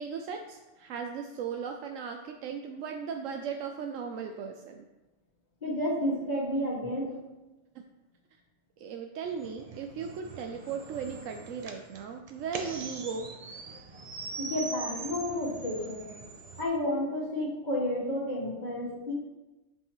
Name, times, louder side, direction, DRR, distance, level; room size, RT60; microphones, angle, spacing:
voice 1, 0.0-4.9 8.8-13.3, right 6 dB, 80° right, 4 dB, 1.0 m, -37 dB
voice 2, 5.6-7.1 14.4-16.1 16.6-19.1, left 1 dB, 35° left, -6 dB, 2.2 m, -31 dB
sound 1, 9.3-16.7, right 4 dB, 40° right, 0.6 m, -42 dB
9.3 x 5.5 x 3.1 m, 1.1 s
omnidirectional pair, 1.3 m